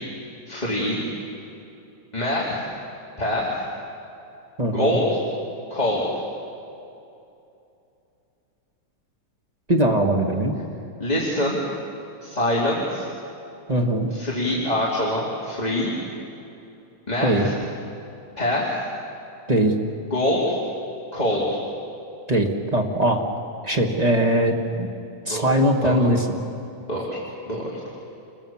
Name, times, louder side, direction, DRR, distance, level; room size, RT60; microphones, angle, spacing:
voice 1, 0.5-1.0 2.1-2.6 3.2-3.5 4.7-5.2 5.7-6.1 11.0-11.6 12.2-13.1 14.1-15.9 17.1-17.5 18.4-18.8 20.1-20.6 21.1-21.6 25.3-25.5 25.8-26.0 26.9-27.9, left 1 dB, 15° left, -6 dB, 2.7 m, -24 dB
voice 2, 4.6-5.0 9.7-10.5 13.7-14.1 17.2-17.5 19.5-19.7 22.3-23.2 23.6-24.9 25.2-26.3, right 1 dB, 25° right, 0 dB, 0.9 m, -21 dB
29.0 x 22.0 x 7.3 m, 2.7 s
omnidirectional pair, 3.6 m